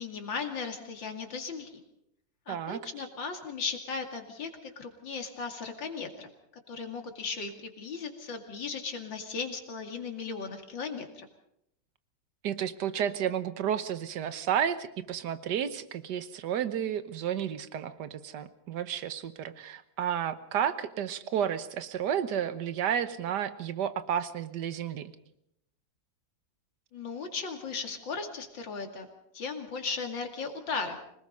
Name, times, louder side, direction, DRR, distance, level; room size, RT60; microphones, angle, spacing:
voice 1, 0.0-1.8 2.5-6.3 6.7-11.3 26.9-29.1 29.3-31.0, left 5 dB, 80° left, 5 dB, 3.0 m, -37 dB
voice 2, 2.5-3.1 12.4-25.1, right 9 dB, 65° right, 12 dB, 1.6 m, -32 dB
25.5 x 19.0 x 5.4 m, 0.78 s
omnidirectional pair, 2.0 m